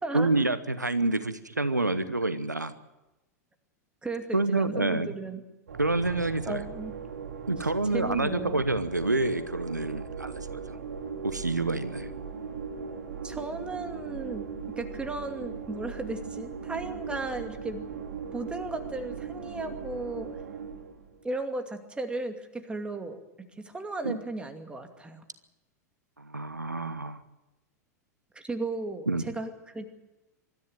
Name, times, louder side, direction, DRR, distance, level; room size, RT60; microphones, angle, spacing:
voice 1, 0.1-2.7 4.3-5.1 5.8-6.6 7.5-10.6 11.2-12.1 24.0-24.2 26.2-27.2 29.1-29.3, right 2 dB, 90° right, 13 dB, 1.0 m, -28 dB
voice 2, 4.0-5.4 6.5-6.9 7.6-8.6 13.2-14.5 14.8-17.9 18.3-20.3 21.2-23.2 23.6-25.2 28.3-29.9, right 2 dB, 10° right, 5 dB, 2.5 m, -35 dB
sound 1, 5.7-21.2, right 6 dB, 70° right, 3.7 m, -39 dB
24.0 x 13.5 x 9.1 m, 1.0 s
figure-of-eight pair, 90°, 9 cm